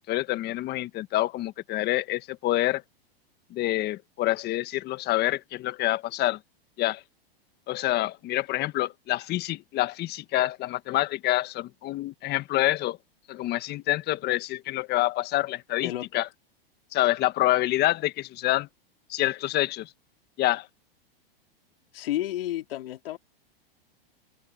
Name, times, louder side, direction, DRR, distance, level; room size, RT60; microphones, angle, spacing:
voice 1, 0.1-2.8 3.5-6.4 6.8-7.0 7.7-13.0 13.3-16.3 16.9-18.7 19.1-19.9 20.4-20.7, left 16 dB, 35° left, 1.6 m, -27 dB
voice 2, 21.9-23.2, left 14 dB, 70° left, 3.5 m, -31 dB
open air
hypercardioid pair, 120°, 30 cm